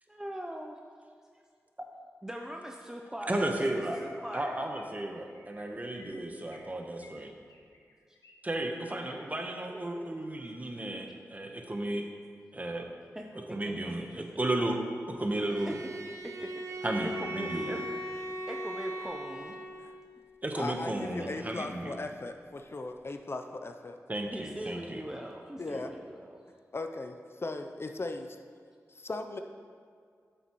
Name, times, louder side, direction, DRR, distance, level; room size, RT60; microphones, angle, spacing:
voice 1, 0.1-0.8 2.2-4.6 13.1-13.6 13.8-14.2 15.7-15.8 16.2-17.8 18.1-19.6 24.3-26.4, right 1 dB, 10° right, 1 dB, 0.6 m, -41 dB
voice 2, 3.3-4.0 4.3-7.3 8.4-12.1 12.5-12.9 13.5-14.8 15.1-15.8 16.8-17.8 20.4-22.0 24.1-25.0, right 1 dB, 25° right, 3 dB, 1.0 m, -34 dB
Chirp tweet, 3.9-4.4 4.7-4.9 5.3-5.6 5.9-6.7 7.0-8.3 8.6-9.2 9.6-9.9 10.3-10.6, left 2 dB, 80° left, 1.1 m, -57 dB
Bowed string instrument, 15.3-20.0, right 1 dB, 70° right, 1.1 m, -38 dB
voice 3, 20.6-24.0 25.6-25.9 26.7-28.4 28.9-29.4, left 2 dB, 45° left, 6 dB, 0.5 m, -38 dB
9.1 x 6.7 x 3.0 m, 2.1 s
cardioid pair, 50°, 6 cm